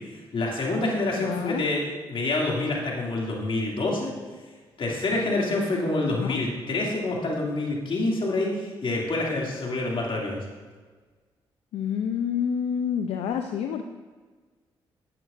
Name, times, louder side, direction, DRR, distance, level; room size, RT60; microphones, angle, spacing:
voice 1, 0.1-1.8 2.1-4.1 4.8-10.4, left 2 dB, 60° left, -2 dB, 2.5 m, -27 dB
voice 2, 1.1-1.7 6.1-6.4 11.7-13.8, left 8 dB, 80° left, 6 dB, 0.5 m, -28 dB
11.0 x 9.1 x 2.5 m, 1.4 s
supercardioid pair, 55°, 10 cm